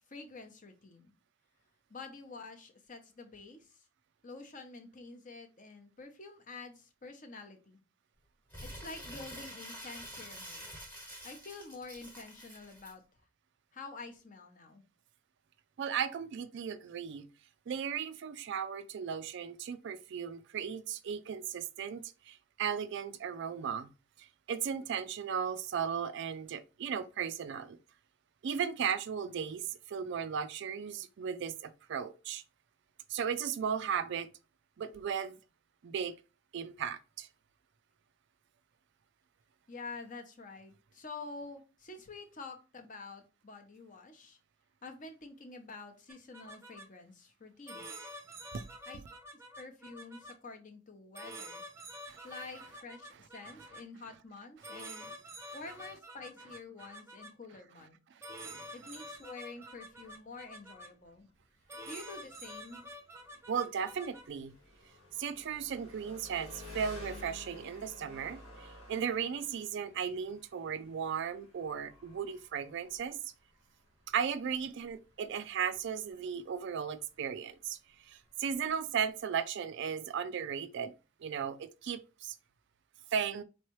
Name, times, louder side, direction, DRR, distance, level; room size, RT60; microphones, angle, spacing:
voice 1, 0.1-1.1 1.9-3.8 4.2-7.8 8.6-10.7 11.2-13.0 13.7-14.8 39.7-44.4 44.8-48.1 48.9-49.0 49.6-51.6 52.2-55.1 55.5-58.0 58.7-61.3 61.9-62.9, left 3 dB, 35° left, 0.7 m, -48 dB
Crumpling crinkling, 8.5-12.9, equal, 10° left, 1.2 m, -47 dB
voice 2, 15.8-17.3 17.7-23.9 24.2-27.8 28.4-32.4 33.1-34.3 34.8-35.4 35.8-36.1 36.5-37.3 48.5-48.6 52.1-52.2 58.4-58.7 63.5-64.5 65.2-73.2 74.1-77.8 78.1-80.9 81.2-82.4 83.1-83.4, right 7 dB, 55° right, 0.3 m, -36 dB
sound 1, 46.1-46.8 47.7-50.3 51.1-53.8 54.6-57.3 58.2-60.9 61.7-64.3, right 1 dB, 10° right, 0.6 m, -48 dB
Engine, 59.9-79.3, left 2 dB, 85° left, 1.6 m, -54 dB
4.5 x 3.1 x 3.0 m
head